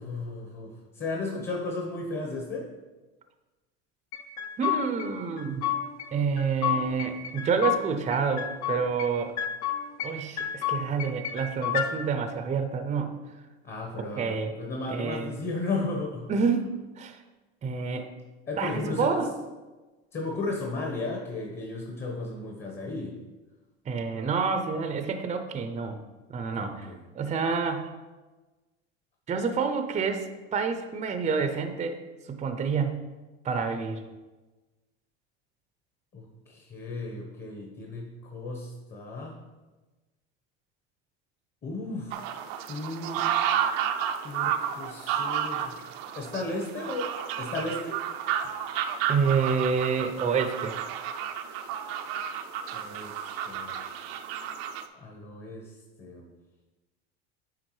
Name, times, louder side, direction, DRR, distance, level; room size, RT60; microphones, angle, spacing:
voice 1, 0.0-2.7 13.6-16.3 18.5-19.2 20.1-23.1 26.5-27.0 36.1-39.4 41.6-42.3 42.7-43.3 44.2-45.9 46.2-47.1 47.4-48.0 52.7-53.8 55.0-56.3, left 2 dB, 30° left, 0 dB, 1.1 m, -35 dB
sound 1, 4.1-5.1 5.4-6.1 6.4-7.8 8.1-9.1 9.4-10.1 10.4-11.9, left 10 dB, 55° left, 0.8 m, -30 dB
voice 2, 4.6-5.6 6.1-9.3 10.0-13.1 14.2-14.5 14.9-15.4 16.3-17.2 17.6-18.1 18.6-19.3 23.9-26.0 26.3-26.9 27.1-27.9 29.3-32.0 32.3-33.1 33.4-34.0 49.1-50.8, right 5 dB, 20° right, 7 dB, 0.6 m, -28 dB
sound 2, 42.1-54.9, right 9 dB, 70° right, 0.6 m, -31 dB
9.7 x 3.6 x 3.2 m, 1.2 s
hypercardioid pair, 95°, 33 cm